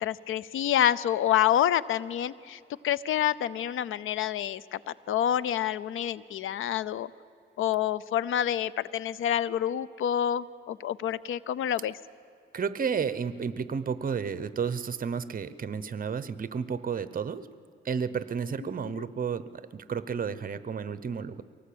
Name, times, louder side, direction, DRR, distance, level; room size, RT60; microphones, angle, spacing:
voice 1, 0.0-7.1 7.6-12.0 18.9-19.0, left 10 dB, 85° left, 19 dB, 0.6 m, -28 dB
voice 2, 12.5-17.5 17.8-21.4, right 6 dB, 45° right, 15 dB, 0.9 m, -32 dB
23.5 x 18.0 x 8.7 m, 2.5 s
cardioid pair, 100°, 20 cm